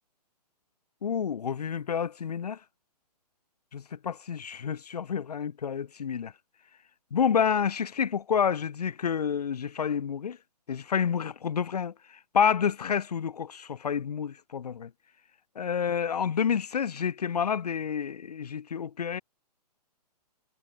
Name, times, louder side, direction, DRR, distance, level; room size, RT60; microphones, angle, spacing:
voice 1, 1.0-2.6 3.7-6.3 7.1-10.4 10.7-14.9 15.6-19.2, left 7 dB, 70° left, 0.8 m, -29 dB
figure-of-eight pair, 125°, 21 cm